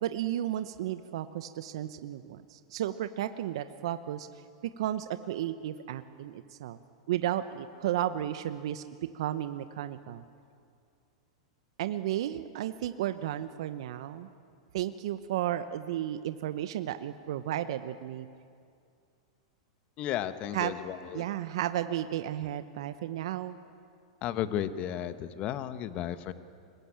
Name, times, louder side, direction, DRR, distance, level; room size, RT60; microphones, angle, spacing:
voice 1, 0.0-4.3 4.8-6.8 7.1-8.8 9.1-10.2 11.8-14.3 14.7-18.3 20.5-20.7 21.1-23.6, right 12 dB, 65° right, 11 dB, 1.0 m, -33 dB
voice 2, 20.0-21.2 24.2-26.3, left 11 dB, 40° left, 11 dB, 1.4 m, -34 dB
26.0 x 21.0 x 8.8 m, 2.4 s
hypercardioid pair, 105°, 3 cm